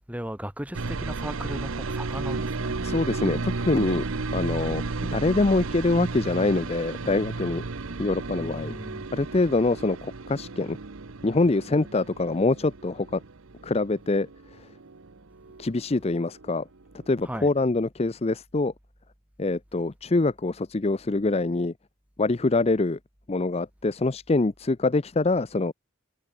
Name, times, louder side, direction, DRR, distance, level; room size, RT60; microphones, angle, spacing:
voice 1, 0.1-2.8 8.4-9.1 17.2-17.5, equal, 5° right, 2.0 m, -36 dB
sound 1, 0.7-16.5 16.8-17.6, right 3 dB, 75° right, 0.9 m, -34 dB
voice 2, 2.8-4.0 4.3-4.8 5.1-7.6 8.0-8.8 9.1-10.8 11.2-13.2 13.6-14.3 15.6-16.6 17.1-18.7 19.4-21.7 22.2-23.0 23.3-25.7, left 2 dB, 30° left, 0.5 m, -24 dB
head